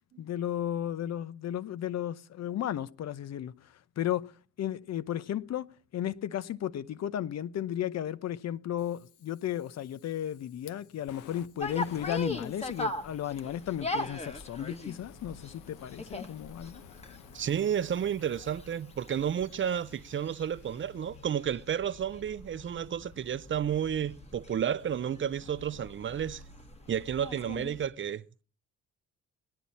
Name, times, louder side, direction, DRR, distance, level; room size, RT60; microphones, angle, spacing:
voice 1, 0.2-4.3 4.6-16.8, left 11 dB, 60° left, 0.8 m, -34 dB
Fire, 8.8-21.9, left 10 dB, 90° left, 0.9 m, -55 dB
sound 1, 11.6-27.9, left 1 dB, 20° left, 1.5 m, -41 dB
voice 2, 17.3-26.4 26.9-28.4, right 9 dB, 40° right, 0.6 m, -31 dB
19.0 x 10.5 x 4.1 m
cardioid pair, 90°, 30 cm